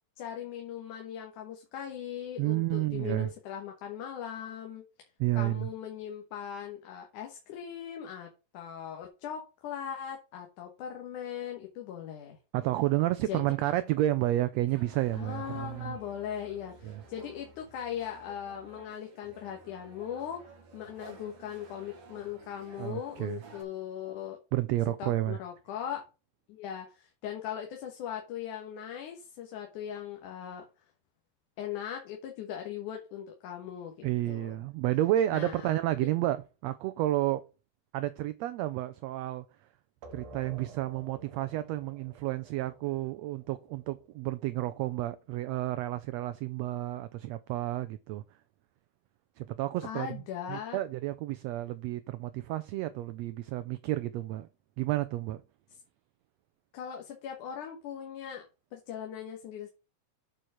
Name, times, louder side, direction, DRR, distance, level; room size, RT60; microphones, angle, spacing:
voice 1, 0.2-4.8 5.4-12.4 13.3-13.7 15.1-20.4 20.7-24.4 25.0-26.0 26.5-30.6 31.6-34.6 35.3-36.1 49.8-50.8 56.7-58.5 58.7-59.7, left 9 dB, 80° left, 2.7 m, -39 dB
voice 2, 2.4-3.3 5.2-5.7 12.5-15.9 16.8-17.0 22.8-23.4 24.5-25.4 34.0-37.5 37.9-39.4 40.1-48.2 49.4-50.1 50.5-54.5 54.8-55.4, right 15 dB, 80° right, 1.5 m, -31 dB
sound 1, 14.7-23.6, right 3 dB, 45° right, 2.4 m, -53 dB
sound 2, 40.0-45.4, right 3 dB, 60° right, 2.7 m, -52 dB
9.0 x 4.5 x 4.8 m
omnidirectional pair, 3.5 m